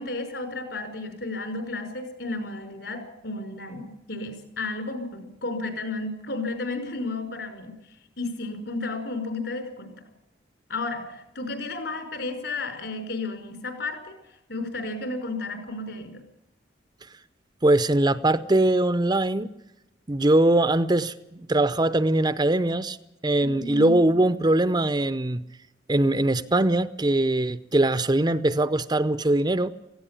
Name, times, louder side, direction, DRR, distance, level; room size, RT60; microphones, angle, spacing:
voice 1, 0.0-7.8 8.2-9.9 10.7-14.2 14.5-16.2 23.4-24.0, left 3 dB, 65° left, 7 dB, 5.5 m, -33 dB
voice 2, 17.6-19.5 20.1-23.0 23.2-25.4 25.9-29.7, right 1 dB, 25° right, 13 dB, 0.7 m, -22 dB
17.5 x 16.0 x 9.9 m, 0.88 s
head